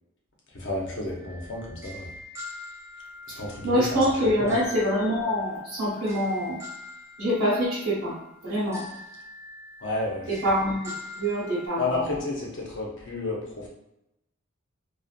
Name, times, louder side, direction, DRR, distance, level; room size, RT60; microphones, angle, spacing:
voice 1, 0.5-2.1 3.4-3.9 4.4-4.5 9.8-10.3 11.8-13.7, left 2 dB, 60° left, -2 dB, 0.7 m, -31 dB
sound 1, 1.2-11.7, left 3 dB, 15° right, 0.5 m, -44 dB
voice 2, 3.6-6.6 7.2-8.1 8.4-8.9 10.3-12.2, equal, 90° right, -9 dB, 1.1 m, -25 dB
2.5 x 2.4 x 2.4 m, 0.86 s
head